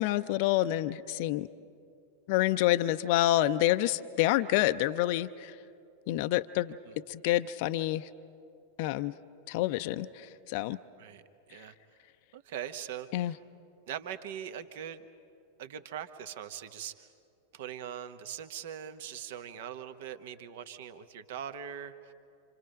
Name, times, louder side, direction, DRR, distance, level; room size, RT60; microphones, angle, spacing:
voice 1, 0.0-1.5 2.3-5.5 6.1-6.8 7.1-8.1 8.8-9.1 9.5-10.8 13.1-13.3, left 15 dB, 45° left, 12 dB, 0.5 m, -28 dB
voice 2, 11.0-11.7 12.3-13.4 13.9-15.0 15.6-17.1 17.5-22.1, right 9 dB, 55° right, 10 dB, 1.1 m, -41 dB
28.0 x 27.0 x 5.2 m, 2.4 s
figure-of-eight pair, 90°, 0 cm